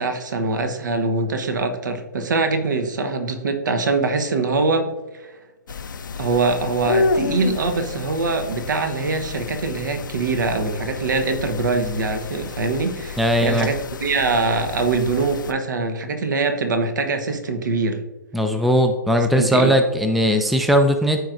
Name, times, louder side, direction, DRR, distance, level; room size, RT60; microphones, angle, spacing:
voice 1, 0.0-4.9 5.1-5.3 6.2-18.0 19.2-19.7, right 3 dB, 65° right, 7 dB, 1.2 m, -23 dB
sound 1, 5.7-15.5, left 4 dB, 75° left, 0.5 m, -30 dB
voice 2, 13.2-13.7 18.3-21.2, equal, ahead, 6 dB, 0.4 m, -18 dB
14.0 x 4.7 x 2.6 m, 1.2 s
hypercardioid pair, 135°, 11 cm